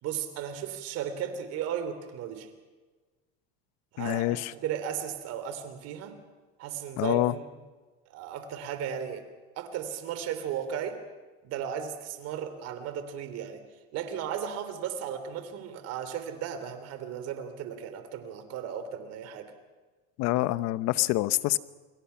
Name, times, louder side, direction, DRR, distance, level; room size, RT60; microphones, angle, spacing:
voice 1, 0.0-2.5 3.9-6.2 6.6-7.5 8.1-9.2 9.5-11.0 11.4-13.6 13.9-19.5, right 8 dB, 60° right, 9 dB, 3.5 m, -35 dB
voice 2, 4.0-4.5 7.0-7.3 20.2-21.6, left 17 dB, 60° left, 15 dB, 1.0 m, -26 dB
29.0 x 22.5 x 5.8 m, 1.3 s
supercardioid pair, 115°, 29 cm